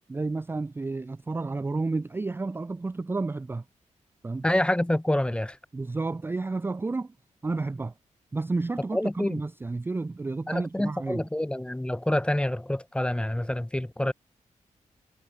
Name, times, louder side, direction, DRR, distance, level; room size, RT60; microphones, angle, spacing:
voice 1, 0.1-3.6 4.2-4.4 5.7-7.1 7.4-7.9 8.3-11.3, right 3 dB, 15° right, 0.3 m, -31 dB
voice 2, 4.4-5.6 8.9-9.4 10.5-14.1, left 1 dB, 10° left, 0.8 m, -27 dB
cardioid pair, 70°, 13 cm